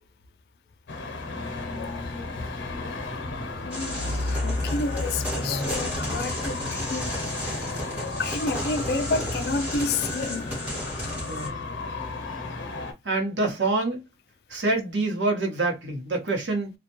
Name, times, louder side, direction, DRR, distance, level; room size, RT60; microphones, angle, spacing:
Traffic noise roadway noise, 0.9-12.9, left 3 dB, 90° left, 0.7 m, -34 dB
voice 1, 3.6-6.6 6.9-7.1 8.0-10.5, left 3 dB, 60° left, 0.3 m, -29 dB
sound 1, 3.7-11.5, equal, 5° right, 1.0 m, -33 dB
voice 2, 13.0-14.0 14.5-16.7, right 2 dB, 85° right, 0.9 m, -26 dB
2.3 x 2.1 x 2.9 m
head